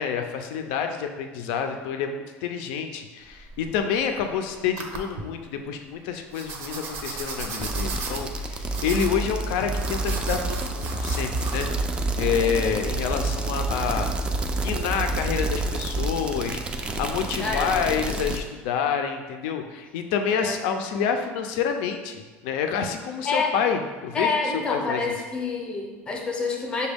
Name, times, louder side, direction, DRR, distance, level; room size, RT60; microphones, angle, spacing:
voice 1, 0.0-11.7 12.2-14.1 14.5-25.2, left 7 dB, 85° left, 5 dB, 0.4 m, -28 dB
sound 1, 3.2-4.3 4.8-5.2 6.3-11.7, right 4 dB, 60° right, 0.6 m, -36 dB
sound 2, 7.6-18.4, right 2 dB, 20° right, 0.3 m, -28 dB
voice 2, 17.4-18.2 20.3-20.6 23.2-23.5 24.1-26.9, left 4 dB, 20° left, 0 dB, 0.6 m, -28 dB
6.0 x 2.2 x 3.4 m, 1.4 s
cardioid pair, 150°, 5 cm